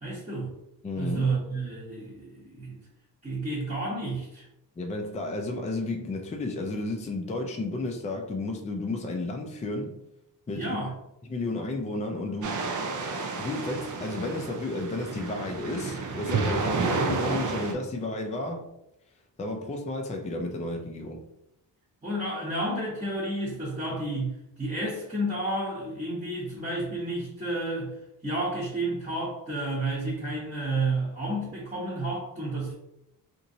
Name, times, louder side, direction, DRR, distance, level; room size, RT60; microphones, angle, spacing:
voice 1, 0.0-0.5 0.9-2.8 3.2-4.5 10.5-10.9 22.0-27.9 28.2-32.7, right 2 dB, 15° right, -8 dB, 0.9 m, -31 dB
voice 2, 0.8-1.2 4.8-9.9 10.5-10.8 11.3-12.6 13.4-18.7 19.4-21.2, left 2 dB, 20° left, 2 dB, 0.3 m, -32 dB
sound 1, 12.4-17.7, right 4 dB, 45° right, 0.4 m, -31 dB
3.0 x 2.6 x 2.6 m, 0.84 s
wide cardioid pair, 130°, 43 cm